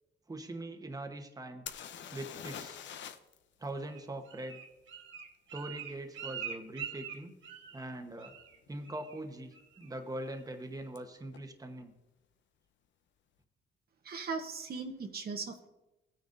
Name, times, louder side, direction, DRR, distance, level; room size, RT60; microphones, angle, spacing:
voice 1, 0.3-1.7 2.1-2.8 3.6-4.6 5.5-7.3 7.7-8.3 8.7-11.9, right 1 dB, 20° right, 5 dB, 1.1 m, -42 dB
sound 1, 1.7-3.4 3.6-3.7 7.1-7.2 7.9-8.1 8.3-8.9 11.0-11.1 11.3-11.4, left 9 dB, 70° left, 0.7 m, -45 dB
Bird, 3.8-7.9 8.2-8.6 8.8-9.2 9.5-9.9 10.3-10.4, right 8 dB, 75° right, 1.2 m, -44 dB
voice 2, 14.0-15.7, right 4 dB, 50° right, 4 dB, 1.0 m, -38 dB
16.5 x 9.3 x 2.6 m, 0.98 s
cardioid pair, 90°, 20 cm